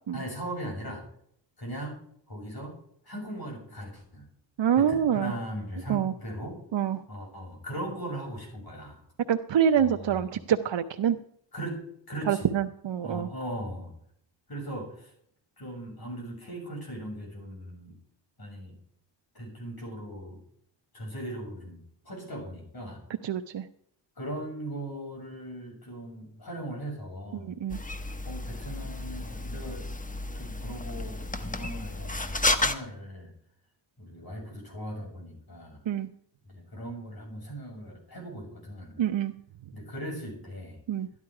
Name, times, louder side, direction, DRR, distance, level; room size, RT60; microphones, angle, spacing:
voice 1, 0.1-1.1 1.6-2.0 2.3-2.8 3.0-4.3 4.8-6.6 7.1-9.0 9.7-10.3 11.5-12.5 13.0-13.9 14.5-15.1 15.6-17.9 18.4-18.7 19.3-20.4 20.9-23.0 24.2-27.5 28.2-29.9 30.3-33.3 34.0-35.8 36.5-39.0 39.7-40.8, right 1 dB, 50° left, 0 dB, 6.9 m, -39 dB
voice 2, 4.6-5.3 5.9-6.1 6.7-7.0 9.3-11.2 12.3-13.3 23.2-23.7 27.3-27.8 35.9-36.1 39.0-39.3 40.9-41.1, right 9 dB, 70° right, 6 dB, 0.8 m, -26 dB
sound 1, 27.7-32.7, left 2 dB, 15° left, 1.1 m, -32 dB
13.0 x 11.0 x 4.8 m, 0.67 s
wide cardioid pair, 85°, 45 cm